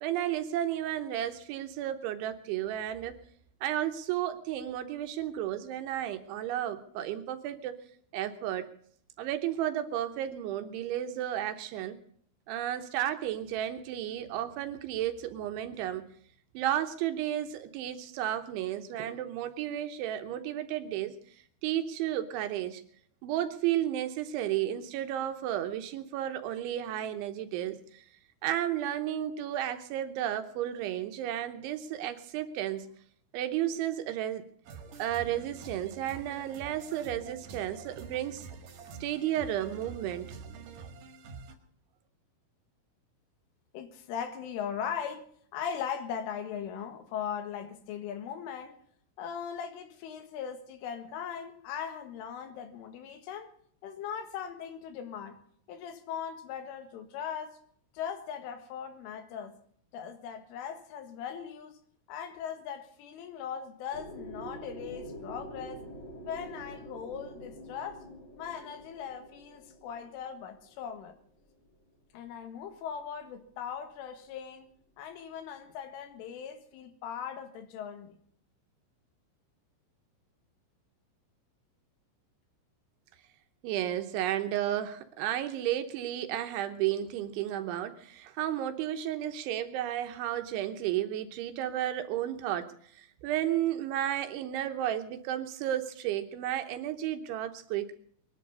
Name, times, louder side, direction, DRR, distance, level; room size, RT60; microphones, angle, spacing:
voice 1, 0.0-3.2 3.6-7.8 8.1-8.6 9.2-12.0 12.5-16.1 16.5-21.2 21.6-22.8 23.2-28.0 28.4-32.9 33.3-34.5 35.0-38.5 39.0-40.3 83.6-97.9, right 12 dB, 80° right, 3.2 m, -33 dB
sound 1, 34.6-41.5, right 5 dB, 55° right, 2.8 m, -46 dB
voice 2, 43.7-45.3 45.5-48.8 49.2-53.5 53.8-55.4 55.7-57.6 57.9-59.5 59.9-61.8 62.1-65.8 66.3-68.1 68.4-71.2 72.1-74.7 75.0-78.2, left 8 dB, 80° left, 4.1 m, -39 dB
sound 2, 63.9-71.8, equal, 25° left, 3.9 m, -46 dB
22.0 x 11.5 x 5.3 m
omnidirectional pair, 5.8 m